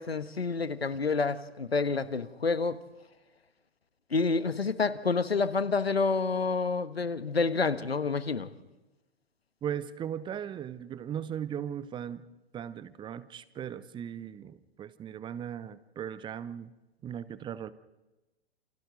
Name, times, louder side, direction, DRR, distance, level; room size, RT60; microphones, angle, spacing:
voice 1, 0.0-2.8 4.1-8.5, left 4 dB, 80° left, 13 dB, 1.5 m, -28 dB
voice 2, 9.6-12.3 12.5-16.7 17.0-17.7, right 9 dB, 15° right, 16 dB, 0.9 m, -38 dB
29.5 x 28.0 x 4.0 m, 1.1 s
figure-of-eight pair, 110°, 31 cm